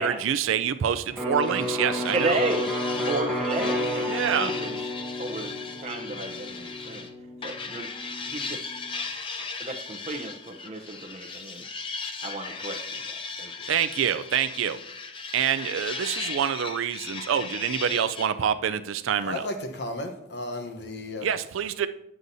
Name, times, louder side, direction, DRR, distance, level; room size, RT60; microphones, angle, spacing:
voice 1, 0.0-2.4 4.1-4.5 13.7-14.8 15.3-19.4 21.2-21.9, right 8 dB, 85° right, 11 dB, 0.4 m, -26 dB
Electric guitar, 1.1-8.9, left 1 dB, ahead, 0.7 m, -31 dB
sound 1, 1.4-7.1 7.4-18.3, left 4 dB, 25° left, 0.4 m, -37 dB
voice 2, 2.1-2.7 3.0-4.8 5.2-7.1 7.4-7.9 8.2-8.6 9.6-11.6 12.2-13.7, right 2 dB, 35° right, 3 dB, 0.7 m, -33 dB
voice 3, 19.2-21.3, left 1 dB, 55° left, 5 dB, 0.9 m, -34 dB
9.8 x 7.6 x 2.6 m, 0.82 s
head